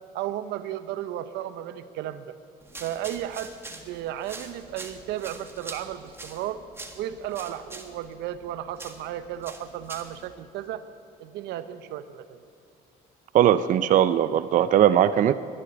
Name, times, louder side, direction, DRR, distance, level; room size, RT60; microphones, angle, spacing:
voice 1, 0.1-2.3 2.8-6.6 6.9-10.8 11.2-12.4, right 11 dB, 85° right, 12 dB, 0.8 m, -34 dB
sound 1, 2.6-10.3, right 2 dB, 15° right, 1.7 m, -44 dB
voice 2, 13.3-15.3, right 10 dB, 50° right, 13 dB, 0.5 m, -19 dB
12.0 x 11.0 x 10.0 m, 2.5 s
cardioid pair, 110°, 17 cm